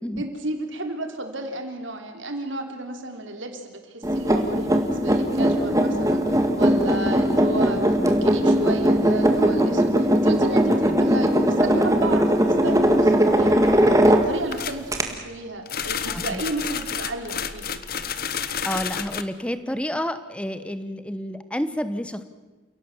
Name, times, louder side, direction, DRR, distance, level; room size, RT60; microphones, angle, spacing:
voice 1, 0.2-13.7 14.1-17.8, right 2 dB, 80° right, 5 dB, 3.4 m, -33 dB
sound 1, 4.0-14.5 14.9-15.0, equal, 15° right, 1.9 m, -19 dB
voice 2, 10.7-11.0 16.1-16.4 18.6-22.2, equal, 5° left, 12 dB, 1.1 m, -30 dB
sound 2, 14.5-14.8 15.7-19.2, left 7 dB, 50° left, 1.1 m, -30 dB
29.5 x 17.0 x 7.3 m, 1.3 s
head